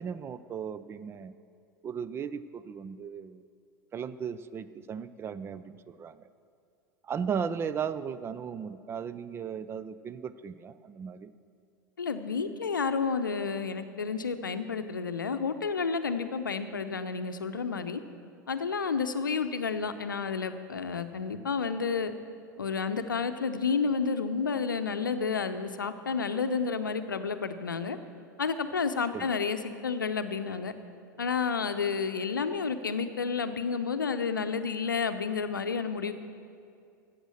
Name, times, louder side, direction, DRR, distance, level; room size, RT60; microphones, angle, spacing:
voice 1, 0.0-1.3 1.8-3.4 3.9-6.3 7.0-11.3 29.1-29.3, right 7 dB, 25° right, 14 dB, 0.4 m, -36 dB
voice 2, 12.0-18.0 18.5-22.1 22.6-28.0 28.4-30.7 31.2-36.1, left 5 dB, 80° left, 10 dB, 0.7 m, -30 dB
14.5 x 8.0 x 6.3 m, 2.4 s
figure-of-eight pair, 85°, 11 cm